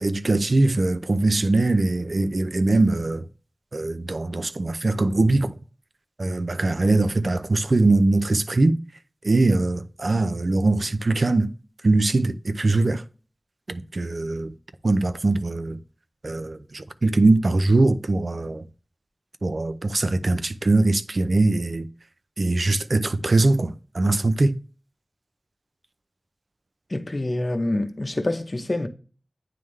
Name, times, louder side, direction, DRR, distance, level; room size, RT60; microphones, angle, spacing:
voice 1, 0.0-3.2 3.7-5.5 6.2-8.8 9.2-11.5 11.8-13.0 13.7-14.5 14.8-15.8 16.2-18.6 19.4-21.9 22.4-24.5, right 2 dB, 70° right, 0.5 m, -21 dB
voice 2, 26.9-28.9, left 1 dB, 50° left, 0.8 m, -26 dB
9.3 x 3.6 x 3.1 m
wide cardioid pair, 45°, 0 cm